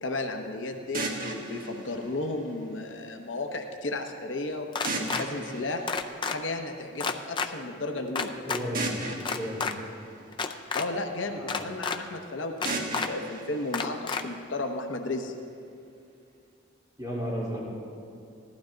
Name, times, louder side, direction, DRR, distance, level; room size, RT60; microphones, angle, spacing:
voice 1, 0.0-4.7 5.0-5.8 6.3-8.3 10.7-15.3, left 2 dB, 80° left, 4 dB, 0.9 m, -34 dB
sound 1, 0.9-3.0 4.8-6.8 8.7-11.0 12.6-14.7, right 2 dB, 50° right, 1.4 m, -37 dB
sound 2, 4.7-5.2 5.9-6.4 7.0-7.5 8.2-8.6 9.2-9.7 10.3-10.9 11.5-12.0 12.6-13.1 13.7-14.2, left 5 dB, 25° left, 0.4 m, -30 dB
voice 2, 8.5-8.9 9.3-9.7 11.3-11.5 17.0-17.6, equal, 20° right, -8 dB, 3.6 m, -33 dB
15.0 x 12.0 x 3.9 m, 2.5 s
head